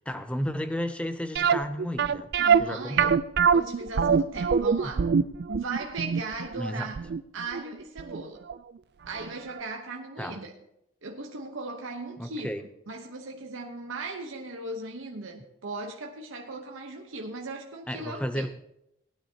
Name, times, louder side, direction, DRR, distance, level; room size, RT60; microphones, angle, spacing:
voice 1, 0.1-2.3 2.6-3.2 6.6-6.9 10.2-10.4 12.2-12.6 17.9-18.5, equal, 5° left, 0.5 m, -33 dB
sound 1, 1.4-8.2 8.5-8.6 9.2-9.3 9.6-9.7, right 6 dB, 50° right, 0.3 m, -24 dB
voice 2, 2.4-3.1 3.5-5.1 5.5-7.0 7.3-8.4 9.1-10.5 11.0-18.5, right 3 dB, 80° right, 0.9 m, -38 dB
18.5 x 9.7 x 2.8 m
head